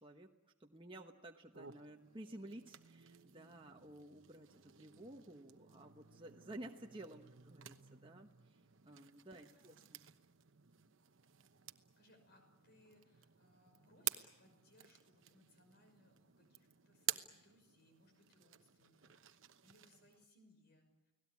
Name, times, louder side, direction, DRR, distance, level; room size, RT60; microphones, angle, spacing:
voice 1, 0.6-8.6 8.8-10.0, right 1 dB, 25° right, 1 dB, 1.2 m, -53 dB
sound 1, 1.5-20.3, right 12 dB, 65° right, 1.0 m, -51 dB
voice 2, 9.5-9.9 12.0-20.9, left 1 dB, 50° left, 5 dB, 6.0 m, -69 dB
30.0 x 18.5 x 8.5 m, 1.0 s
head